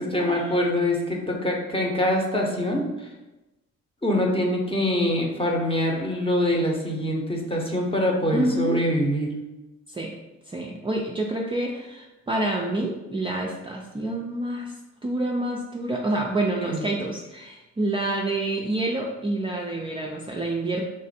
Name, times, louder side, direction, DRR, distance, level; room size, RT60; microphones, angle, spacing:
voice 1, 0.0-3.1 4.0-9.3 16.6-16.9, left 1 dB, 20° left, 0 dB, 0.7 m, -24 dB
voice 2, 8.3-8.8 9.9-10.1 10.5-14.7 15.0-20.8, right 2 dB, 20° right, -2 dB, 0.4 m, -28 dB
3.1 x 2.5 x 4.2 m, 1.0 s
cardioid pair, 90°, 30 cm